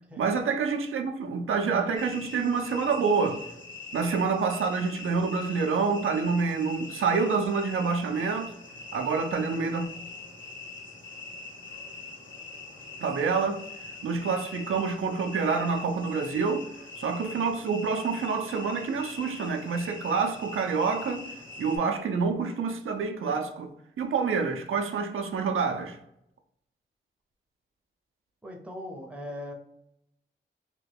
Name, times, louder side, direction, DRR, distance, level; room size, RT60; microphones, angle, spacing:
voice 1, 0.2-3.4 3.9-8.5 8.9-9.9 13.0-13.6 14.0-16.7 17.0-21.2 21.6-26.0, right 5 dB, 90° right, 0.4 m, -27 dB
sound 1, 2.0-21.8, left 3 dB, 70° left, 1.2 m, -43 dB
voice 2, 28.4-29.5, left 1 dB, 5° right, 0.5 m, -40 dB
2.9 x 2.2 x 3.3 m
wide cardioid pair, 155°, 20 cm